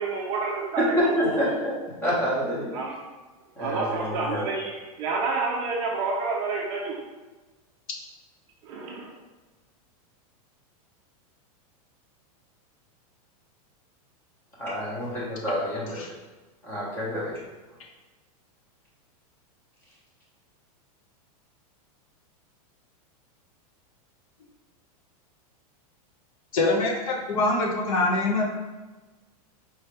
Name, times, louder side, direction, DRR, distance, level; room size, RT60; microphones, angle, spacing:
voice 1, 0.0-1.4 2.7-3.0 3.6-7.0 8.6-9.1, right 4 dB, 25° right, -3 dB, 0.6 m, -29 dB
voice 2, 0.8-1.7 2.0-2.7 3.6-3.8 4.3-4.4 14.6-16.0 16.6-17.3, equal, 10° left, -7 dB, 1.1 m, -27 dB
voice 3, 26.5-28.4, left 2 dB, 65° left, 1 dB, 0.8 m, -24 dB
4.6 x 3.2 x 3.3 m, 1.2 s
supercardioid pair, 180°, 19 cm